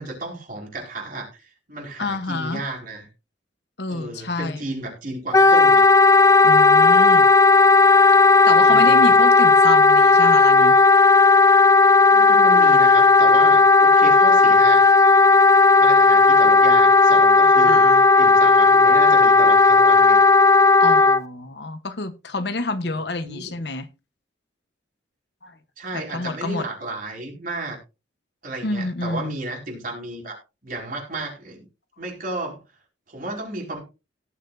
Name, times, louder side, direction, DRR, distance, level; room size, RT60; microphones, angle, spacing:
voice 1, 0.0-3.1 3.9-5.9 8.5-9.1 12.1-14.8 15.8-20.2 22.8-23.6 25.8-27.8 28.4-31.6 32.0-32.6 33.1-33.8, right 2 dB, 45° right, -1 dB, 4.9 m, -33 dB
voice 2, 2.0-2.6 3.8-4.6 6.4-7.3 8.4-10.8 17.6-18.0 20.8-23.9 25.4-25.5 26.1-26.6 28.6-29.4, left 2 dB, 60° left, 11 dB, 1.1 m, -28 dB
Wind instrument woodwind instrument, 5.3-21.2, left 3 dB, 15° left, 0.4 m, -14 dB
18.5 x 6.7 x 2.6 m, 0.28 s
head